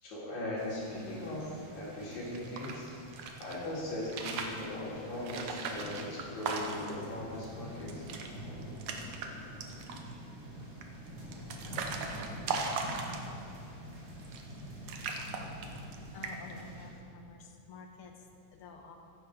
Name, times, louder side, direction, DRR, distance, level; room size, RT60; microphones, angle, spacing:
voice 1, 0.0-2.9 3.4-8.1, left 1 dB, 80° left, -7 dB, 5.0 m, -39 dB
sound 1, 0.6-16.9, equal, 55° right, 3.9 m, -47 dB
sound 2, 2.2-3.6 4.0-4.7 5.2-7.0 7.4-7.5 7.8-8.3 8.6-9.3 9.6-10.1 10.8-13.5 14.2-14.6 14.9-16.0 16.2-16.6, right 4 dB, 75° right, 2.4 m, -38 dB
voice 2, 16.1-18.1 18.5-19.0, left 4 dB, 55° left, 3 dB, 1.9 m, -49 dB
15.5 x 11.5 x 4.8 m, 2.5 s
omnidirectional pair, 3.3 m